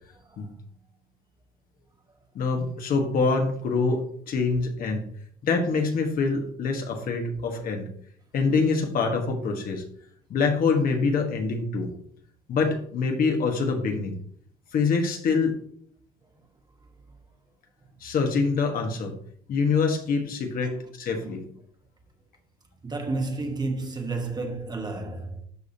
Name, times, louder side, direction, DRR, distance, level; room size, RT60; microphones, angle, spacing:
voice 1, 2.3-5.1 5.4-7.8 8.3-9.8 10.3-11.9 12.5-14.2 14.7-15.6 18.0-19.2 19.5-21.4, left 4 dB, 60° left, 1.5 m, -25 dB
voice 2, 22.8-25.5, right 3 dB, 25° right, 1.3 m, -31 dB
12.0 x 5.0 x 2.8 m
cardioid pair, 110°, 17 cm